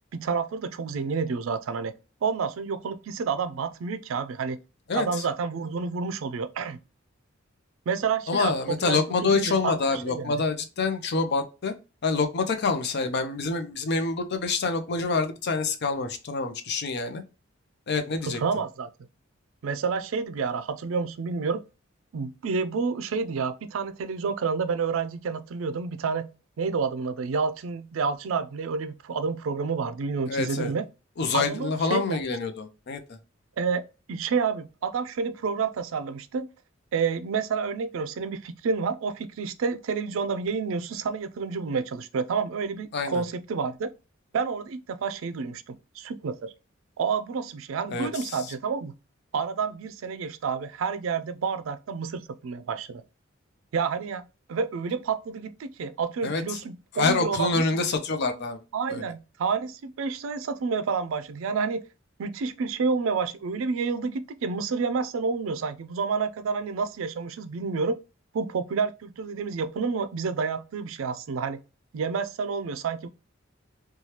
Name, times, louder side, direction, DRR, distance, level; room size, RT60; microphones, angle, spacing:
voice 1, 0.1-1.9 2.2-4.6 4.9-6.8 7.9-10.4 18.2-18.9 19.6-21.6 22.1-26.3 26.6-30.8 31.3-32.2 33.6-33.8 34.1-36.5 36.9-43.9 44.3-46.5 47.0-48.9 49.3-53.0 53.7-57.8 58.7-61.8 62.2-68.0 68.3-71.6 71.9-73.1, right 5 dB, 80° right, 0.4 m, -29 dB
voice 2, 8.3-11.7 12.0-17.2 17.9-18.4 30.3-30.7 31.2-33.0 42.9-43.2 47.9-48.4 56.2-56.4 56.9-58.6 58.9-59.0, left 4 dB, 55° left, 0.5 m, -26 dB
3.1 x 2.2 x 2.8 m
head